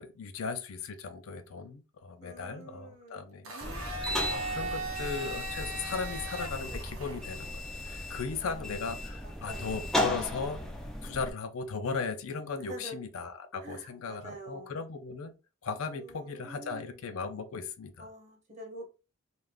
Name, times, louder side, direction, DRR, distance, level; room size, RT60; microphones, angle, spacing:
voice 1, 0.0-10.6 11.0-15.3 15.6-18.1, left 4 dB, 80° left, 0.5 m, -37 dB
voice 2, 2.2-3.2 8.4-9.8 12.6-13.0 13.6-14.7 15.9-17.1 18.0-18.8, right 1 dB, 35° right, 0.9 m, -47 dB
Domestic sounds home sounds, 3.4-7.5, right 2 dB, 75° right, 0.7 m, -38 dB
sound 1, 3.6-11.3, left 1 dB, ahead, 0.3 m, -36 dB
2.4 x 2.3 x 3.4 m
head